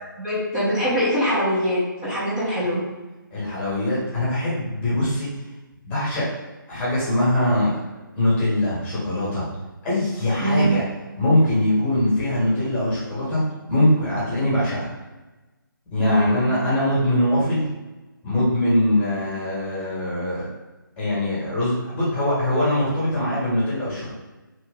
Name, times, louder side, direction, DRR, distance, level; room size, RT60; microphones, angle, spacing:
voice 1, 0.0-2.8 10.4-10.8 16.0-16.4, equal, 20° right, -11 dB, 1.0 m, -23 dB
voice 2, 3.3-5.3 5.8-6.3 6.7-7.7 8.1-9.5 9.8-10.8 11.2-13.4 13.7-14.9 15.9-17.7 18.2-20.5 21.0-24.1, left 1 dB, 15° left, -9 dB, 1.3 m, -22 dB
2.9 x 2.8 x 3.6 m, 1.1 s
figure-of-eight pair, 150°, 12 cm